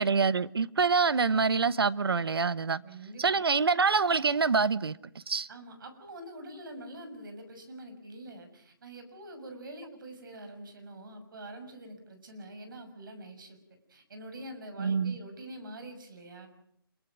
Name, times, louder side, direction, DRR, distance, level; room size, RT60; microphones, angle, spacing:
voice 1, 0.0-2.8 3.2-5.0 5.3-5.5 14.8-15.2, right 5 dB, 80° right, 1.0 m, -26 dB
voice 2, 2.8-3.4 5.5-13.6 13.9-16.5, right 1 dB, 60° right, 6.5 m, -45 dB
26.5 x 23.5 x 6.1 m
hypercardioid pair, 155°, 12 cm